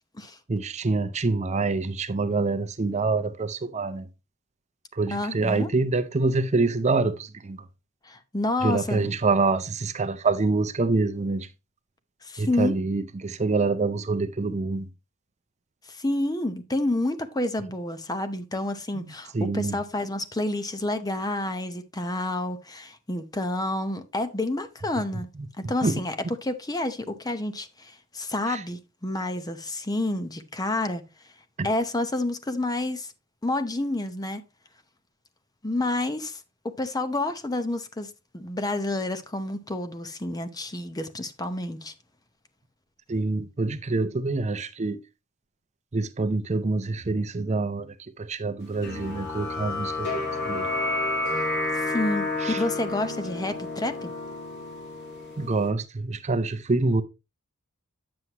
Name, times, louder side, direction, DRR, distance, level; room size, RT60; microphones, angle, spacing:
voice 1, 0.5-4.1 4.9-7.6 8.6-11.5 12.4-14.9 18.9-19.8 25.6-26.0 28.5-28.6 31.6-31.7 43.1-45.0 45.9-50.7 52.4-52.6 55.4-57.0, right 3 dB, 30° right, 0.5 m, -26 dB
voice 2, 5.1-5.7 8.0-9.1 12.2-12.8 15.9-25.3 25.7-26.2 26.4-31.0 31.6-33.1 33.4-34.4 35.6-36.4 36.6-41.9 51.7-54.1, left 2 dB, 20° left, 0.7 m, -29 dB
sound 1, 48.8-55.7, left 2 dB, 55° left, 2.8 m, -30 dB
9.5 x 7.6 x 2.9 m
head